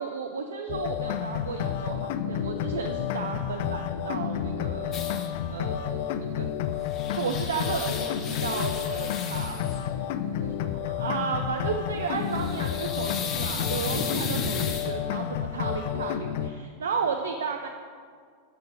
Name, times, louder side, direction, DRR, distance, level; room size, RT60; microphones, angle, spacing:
voice 1, 0.0-5.0 5.5-6.5 6.8-17.7, right 6 dB, 65° right, 4 dB, 0.4 m, -34 dB
sound 1, 0.7-16.5, left 10 dB, 50° left, 0.3 m, -30 dB
sound 2, 4.9-5.3 6.6-9.9 12.1-15.0, left 5 dB, 30° left, 0.9 m, -35 dB
6.9 x 6.5 x 5.0 m, 2.1 s
figure-of-eight pair, 90°, 0 cm